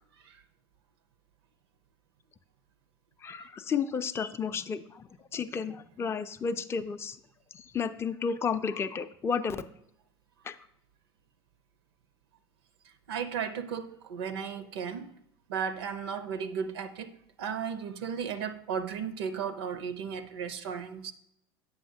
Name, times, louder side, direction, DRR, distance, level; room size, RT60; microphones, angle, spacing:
voice 1, 3.2-7.2 7.5-9.6 10.4-10.6, left 6 dB, 20° left, 0.4 m, -32 dB
voice 2, 13.1-15.1 15.5-17.1 17.4-21.1, right 7 dB, 70° right, 0.5 m, -35 dB
7.9 x 5.7 x 2.7 m
hypercardioid pair, 75°, 13 cm